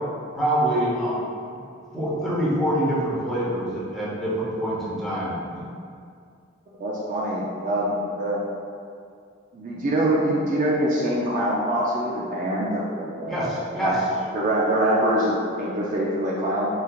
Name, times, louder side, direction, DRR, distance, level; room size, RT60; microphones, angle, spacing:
voice 1, 0.3-1.7 1.9-5.6 13.3-14.1 14.3-14.4, right 1 dB, ahead, -9 dB, 0.8 m, -25 dB
voice 2, 6.8-8.4 9.5-13.5 13.8-14.0 14.3-16.7, right 1 dB, 40° right, -5 dB, 0.4 m, -24 dB
3.3 x 3.3 x 2.3 m, 2.3 s
head